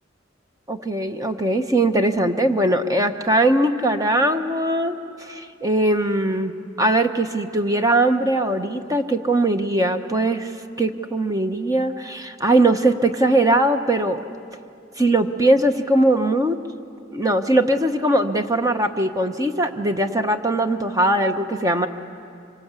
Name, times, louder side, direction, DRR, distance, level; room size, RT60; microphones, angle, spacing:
voice 1, 0.7-10.5 10.8-14.2 15.0-16.6 17.1-21.9, right 1 dB, 20° right, 6 dB, 1.0 m, -20 dB
25.5 x 24.0 x 8.2 m, 2.4 s
head